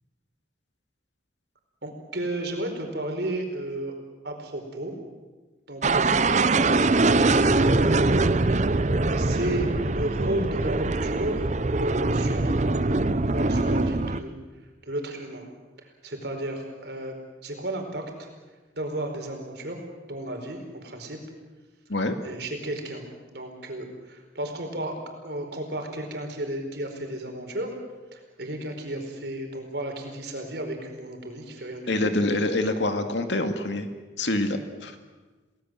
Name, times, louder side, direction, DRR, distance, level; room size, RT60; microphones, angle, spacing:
voice 1, 1.8-3.9 4.2-4.9 5.7-11.5 11.8-14.3 14.8-15.4 16.0-17.1 17.4-18.1 18.7-19.8 20.1-21.2 22.2-23.0 23.3-25.0 25.2-27.7 28.1-32.1, right 1 dB, 60° right, 4 dB, 4.7 m, -33 dB
sound 1, 5.8-14.2, right 2 dB, 40° right, 0.7 m, -23 dB
voice 2, 31.9-33.9 34.2-35.0, left 2 dB, 70° left, 7 dB, 2.3 m, -26 dB
29.0 x 18.5 x 7.8 m, 1.3 s
head